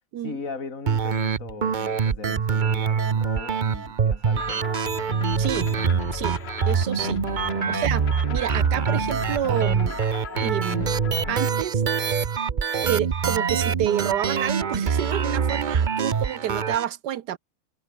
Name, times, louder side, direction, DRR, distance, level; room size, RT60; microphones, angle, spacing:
voice 1, 0.2-4.7 7.5-7.8, left 4 dB, 40° left, 3.3 m, -38 dB
sound 1, 0.9-16.8, right 6 dB, 90° right, 0.4 m, -25 dB
sound 2, 4.3-11.4, left 8 dB, 55° left, 0.7 m, -35 dB
voice 2, 5.4-5.7 6.1-6.4 6.7-7.2 7.7-10.0 10.4-10.9 11.3-11.8 12.8-17.4, right 11 dB, 60° right, 1.4 m, -28 dB
omnidirectional pair, 2.2 m